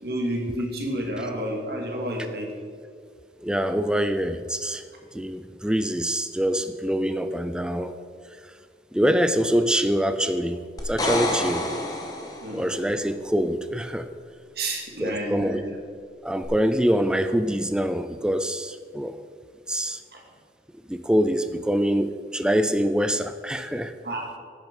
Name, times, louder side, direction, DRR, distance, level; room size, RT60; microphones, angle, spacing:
voice 1, 0.0-2.5 12.4-12.6 14.6-15.8 20.1-20.2 24.0-24.4, right 1 dB, 60° right, 1 dB, 2.3 m, -30 dB
voice 2, 3.4-4.8 5.1-7.9 8.9-11.6 12.5-14.1 15.0-15.6 16.2-19.2 19.7-20.0 20.9-23.9, equal, 5° right, 9 dB, 0.4 m, -24 dB
sound 1, 10.8-12.7 16.4-16.5, left 1 dB, 20° left, 1.4 m, -28 dB
9.9 x 9.7 x 5.3 m, 2.1 s
head